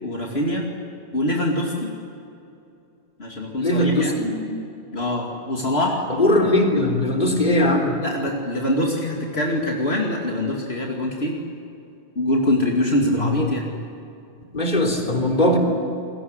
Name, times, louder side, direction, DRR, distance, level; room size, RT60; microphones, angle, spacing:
voice 1, 0.0-0.6 1.1-1.9 3.2-4.2 4.9-6.0 8.0-11.4 12.2-13.6, left 1 dB, 65° left, -1 dB, 2.9 m, -24 dB
voice 2, 3.6-4.3 6.1-8.0 13.2-13.5 14.5-15.6, left 1 dB, 45° left, 2 dB, 3.8 m, -20 dB
28.0 x 22.0 x 8.3 m, 2.7 s
omnidirectional pair, 1.1 m